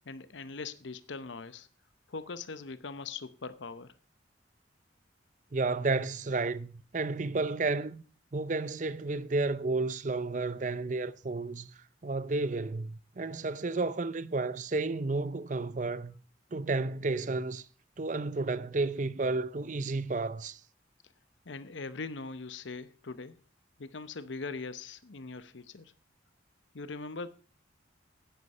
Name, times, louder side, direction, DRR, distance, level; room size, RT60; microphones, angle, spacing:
voice 1, 0.1-1.7 2.1-3.9 21.5-23.4 23.8-25.9 26.7-27.3, left 4 dB, 75° left, 0.8 m, -41 dB
voice 2, 5.5-8.0 8.3-11.7 12.0-16.2 16.5-17.6 18.0-20.6, right 3 dB, 40° right, 0.6 m, -32 dB
10.5 x 9.6 x 5.4 m
head